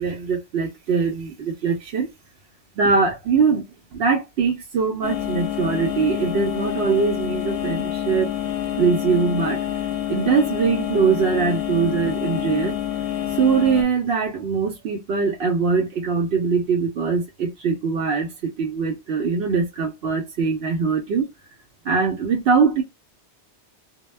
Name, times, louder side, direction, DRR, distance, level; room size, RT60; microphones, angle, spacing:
voice 1, 0.0-2.1 2.8-3.6 3.9-8.3 8.8-9.6 10.1-12.8 13.3-21.3 21.8-22.8, right 5 dB, 70° right, 0.8 m, -22 dB
sound 1, 5.0-13.8, left 11 dB, 65° left, 0.7 m, -27 dB
2.1 x 2.1 x 3.1 m
omnidirectional pair, 1.2 m